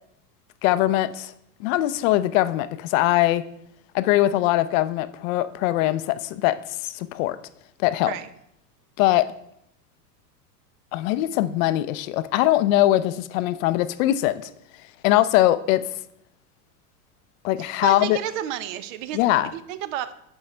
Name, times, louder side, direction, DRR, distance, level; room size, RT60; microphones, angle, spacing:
voice 1, 0.6-1.3 1.6-3.4 3.9-7.4 7.8-8.1 9.0-9.3 10.9-14.5 15.0-15.8 17.4-18.2 19.1-19.5, left 15 dB, 55° left, 14 dB, 0.6 m, -21 dB
voice 2, 17.6-20.1, right 12 dB, 55° right, 13 dB, 0.8 m, -32 dB
9.5 x 6.3 x 3.3 m, 0.75 s
hypercardioid pair, 110°, 47 cm